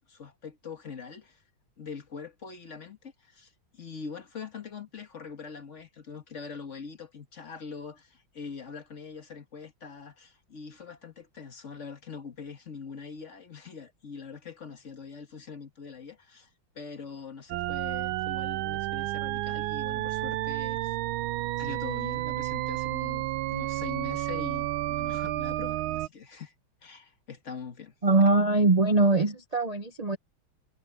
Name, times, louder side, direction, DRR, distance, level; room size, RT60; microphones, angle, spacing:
voice 1, 0.0-1.4 1.8-16.5 16.7-21.0 21.6-26.5 26.8-28.3, left 6 dB, 40° left, 1.6 m, -43 dB
sound 1, 17.5-26.1, right 16 dB, 85° right, 1.4 m, -31 dB
voice 2, 28.0-30.2, right 3 dB, 60° right, 0.4 m, -22 dB
omnidirectional pair, 2.2 m